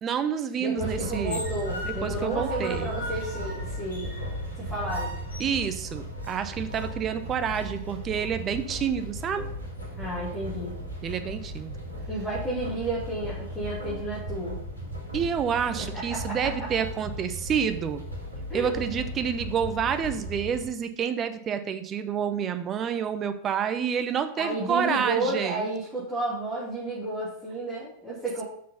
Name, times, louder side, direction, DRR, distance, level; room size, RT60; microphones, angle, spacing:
voice 1, 0.0-1.4 1.8-2.9 5.4-9.5 11.0-11.7 15.1-18.0 18.5-25.7, right 7 dB, 25° right, 9 dB, 0.7 m, -28 dB
voice 2, 0.6-4.2 4.6-5.1 10.0-10.8 12.1-14.6 15.8-16.5 18.5-18.7 24.4-28.4, right 2 dB, ahead, -11 dB, 2.9 m, -32 dB
sound 1, 0.8-20.7, equal, 85° right, 1.8 m, -36 dB
6.2 x 4.7 x 5.4 m, 0.67 s
figure-of-eight pair, 90°, 0 cm